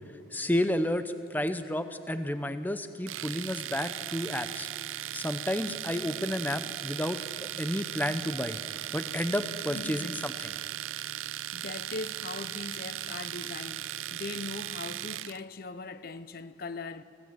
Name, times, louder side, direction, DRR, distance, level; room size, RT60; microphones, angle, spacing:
voice 1, 0.3-4.7 5.1-8.6 8.9-10.5, left 1 dB, 10° left, 0.7 m, -31 dB
Domestic sounds home sounds, 3.1-15.4, right 13 dB, 80° right, 0.4 m, -37 dB
voice 2, 9.7-10.2 10.9-17.0, left 3 dB, 45° left, 0.7 m, -40 dB
25.0 x 17.0 x 8.9 m
head